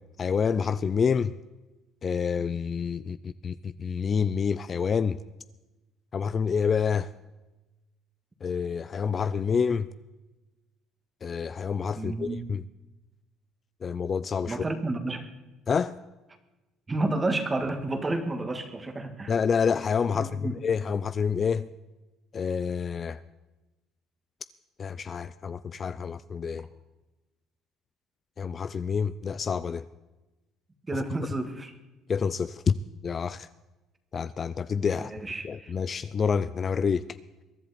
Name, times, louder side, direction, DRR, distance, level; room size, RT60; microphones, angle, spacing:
voice 1, 0.2-1.3 2.0-5.2 6.1-7.1 8.4-9.9 11.2-12.6 13.8-14.6 15.7-16.0 19.3-21.7 22.3-23.2 24.8-26.7 28.4-29.8 30.9-31.0 32.1-32.7 33.0-33.5 34.1-35.1 35.4-37.0, left 6 dB, 30° left, 14 dB, 0.4 m, -28 dB
voice 2, 12.0-12.5 14.5-15.3 16.9-19.3 20.1-20.5 30.9-31.7 35.0-35.7, right 2 dB, 15° right, 7 dB, 1.8 m, -31 dB
22.5 x 11.0 x 4.2 m, 1.1 s
cardioid pair, 135°, 0 cm